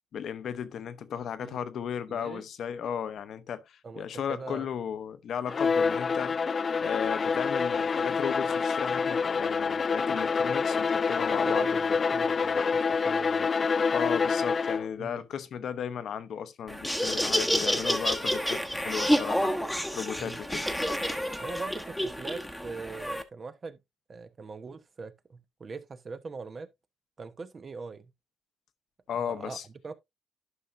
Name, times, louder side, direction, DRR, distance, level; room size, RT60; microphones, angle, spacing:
voice 1, 0.1-11.7 13.9-19.6 19.9-20.7 21.0-21.1 29.1-29.6, left 8 dB, 65° left, 0.9 m, -35 dB
voice 2, 2.1-2.5 3.8-4.7 10.9-13.5 15.0-15.3 20.2-20.4 21.4-23.8 24.1-26.7 27.2-28.1 29.1-29.6 29.8-29.9, right 4 dB, 40° right, 1.0 m, -41 dB
Bowed string instrument, 5.5-15.0, left 5 dB, 40° left, 0.4 m, -27 dB
Laughter, 16.7-23.2, equal, ahead, 1.2 m, -29 dB
11.5 x 5.7 x 2.6 m
cardioid pair, 90°, 0 cm